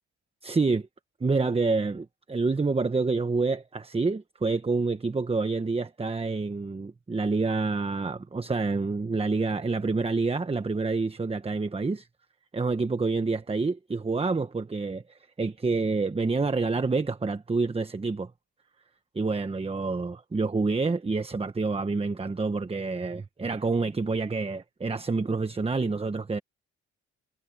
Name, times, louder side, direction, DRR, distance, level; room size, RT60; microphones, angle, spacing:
voice 1, 0.4-0.9 1.2-12.1 12.5-18.3 19.1-26.4, right 3 dB, 20° right, 1.2 m, -28 dB
cardioid pair, 90°, 30 cm